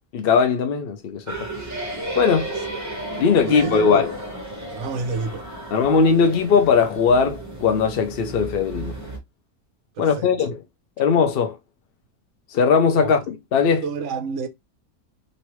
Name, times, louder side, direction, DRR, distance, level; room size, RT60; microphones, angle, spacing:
voice 1, 0.1-1.5 2.2-2.5 3.2-4.1 5.7-9.0 10.0-10.6 11.0-11.6 12.5-13.8, left 5 dB, 65° left, 0.5 m, -19 dB
sound 1, 1.3-9.2, right 1 dB, 15° right, 0.6 m, -33 dB
voice 2, 3.4-4.0 4.7-5.5 10.0-10.3 13.0-13.1 13.8-14.5, right 5 dB, 65° right, 0.8 m, -29 dB
3.1 x 2.7 x 3.0 m
omnidirectional pair, 1.6 m